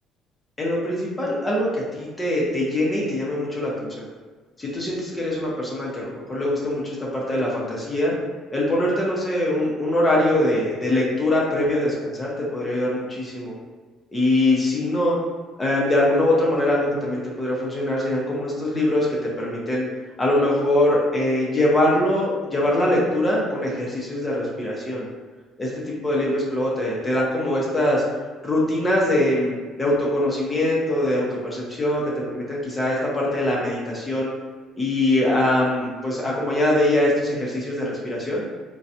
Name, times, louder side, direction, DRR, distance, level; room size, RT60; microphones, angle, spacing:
voice 1, 0.6-4.1 4.6-8.1 8.5-13.5 14.1-15.2 15.6-19.9 20.2-25.1 25.6-28.0 28.4-34.3 34.8-38.4, left 1 dB, 20° left, -4 dB, 0.8 m, -23 dB
3.9 x 2.3 x 2.8 m, 1.4 s
supercardioid pair, 90°, 0 cm